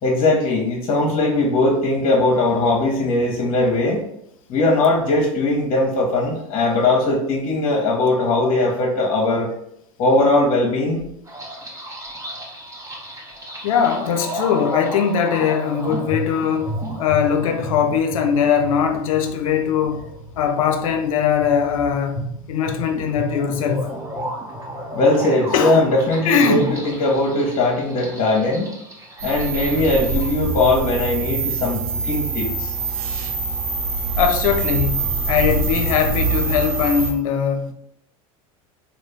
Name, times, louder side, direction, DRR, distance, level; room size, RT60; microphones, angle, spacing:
voice 1, 0.0-4.0 4.5-9.5 10.0-11.0 24.9-28.7 29.2-32.7, left 2 dB, 45° left, 0.9 m, -19 dB
sound 1, 11.3-30.3, right 1 dB, 15° right, 1.0 m, -33 dB
voice 2, 13.6-16.7 17.0-20.0 20.4-24.0 25.5-25.9 26.2-26.8 34.2-37.7, left 7 dB, 70° left, 0.5 m, -20 dB
sound 2, 29.2-37.1, right 4 dB, 75° right, 0.7 m, -24 dB
3.5 x 2.3 x 3.3 m
hypercardioid pair, 85°, 18 cm